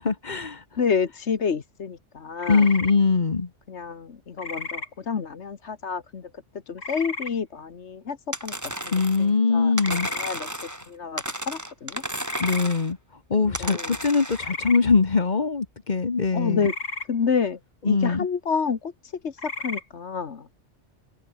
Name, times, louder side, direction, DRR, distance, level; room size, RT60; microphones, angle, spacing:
voice 1, 0.0-0.6 2.5-3.5 8.9-10.1 12.4-13.0 13.3-16.7 17.8-18.3, left 4 dB, 40° left, 1.3 m, -22 dB
voice 2, 0.8-2.7 3.7-6.3 6.7-8.5 8.8-8.9 9.2-10.5 10.9-12.0 13.4-14.0 16.3-16.7 17.1-17.6 17.8-20.5, left 6 dB, 65° left, 1.6 m, -29 dB
sound 1, 2.4-2.9 4.4-4.9 6.8-7.3 9.8-10.3 12.2-12.6 14.3-14.8 16.6-17.1 19.4-19.8, left 3 dB, 90° left, 4.1 m, -33 dB
sound 2, 8.3-9.3 9.8-10.9 11.2-12.9 13.5-14.5, equal, 15° right, 5.3 m, -33 dB
omnidirectional pair, 1.3 m